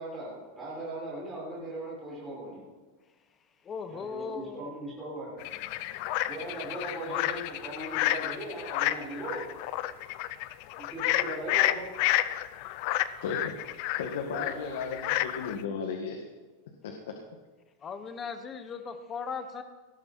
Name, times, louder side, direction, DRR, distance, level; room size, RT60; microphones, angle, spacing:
voice 1, 0.0-2.7 3.9-5.4 6.2-9.5 10.7-11.9 14.2-14.6, right 1 dB, 5° right, -8 dB, 6.1 m, -39 dB
voice 2, 3.6-4.7 17.8-19.6, left 5 dB, 15° left, 9 dB, 0.9 m, -38 dB
sound 1, 5.4-15.6, left 15 dB, 40° left, 0.5 m, -30 dB
voice 3, 13.2-13.5 14.0-16.2 16.8-17.2, left 5 dB, 75° left, 3 dB, 1.9 m, -35 dB
18.5 x 14.0 x 4.3 m, 1.3 s
supercardioid pair, 180°, 0 cm